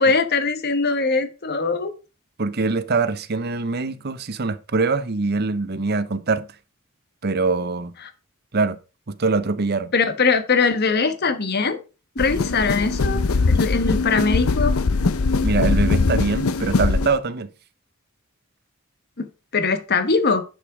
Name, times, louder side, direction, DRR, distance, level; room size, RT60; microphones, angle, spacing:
voice 1, 0.0-1.9 9.9-11.8 12.1-14.7 19.2-20.4, left 4 dB, 50° left, 1.2 m, -21 dB
voice 2, 2.4-6.5 7.2-7.9 8.5-8.8 9.1-9.9 15.4-17.5, right 3 dB, 50° right, 0.8 m, -23 dB
sound 1, 12.2-17.2, left 3 dB, 85° left, 0.7 m, -21 dB
10.5 x 5.2 x 4.8 m
head